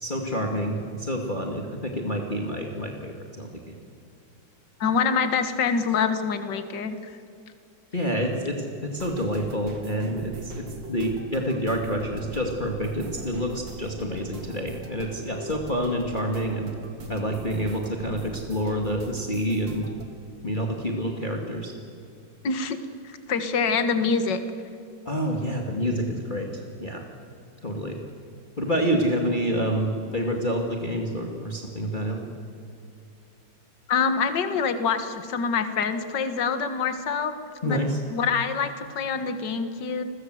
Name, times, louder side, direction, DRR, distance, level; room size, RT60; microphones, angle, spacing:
voice 1, 0.0-3.8 7.9-16.7 17.1-19.9 20.4-21.7 25.0-27.0 27.6-28.0 28.6-32.2 37.6-38.0, equal, 25° left, 1 dB, 2.5 m, -28 dB
voice 2, 4.8-7.1 22.4-22.8 23.0-24.4 33.9-37.4 37.6-37.8 38.1-40.0, left 5 dB, 65° left, 9 dB, 2.1 m, -25 dB
sound 1, 8.9-20.1, right 3 dB, 70° right, 2.8 m, -42 dB
29.5 x 22.5 x 7.9 m, 2.5 s
omnidirectional pair, 2.1 m